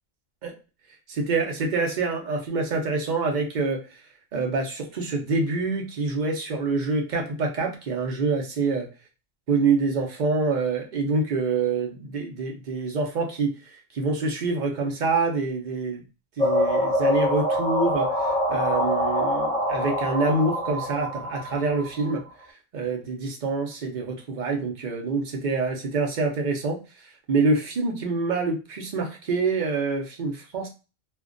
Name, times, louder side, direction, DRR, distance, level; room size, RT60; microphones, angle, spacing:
voice 1, 1.1-3.8 4.3-8.9 9.5-13.5 13.9-16.0 16.4-22.2 22.7-26.8 27.3-30.7, right 3 dB, 50° right, 1 dB, 0.5 m, -26 dB
sound 1, 16.4-22.1, left 1 dB, 10° left, 0.4 m, -25 dB
2.5 x 2.2 x 2.4 m, 0.31 s
omnidirectional pair, 1.4 m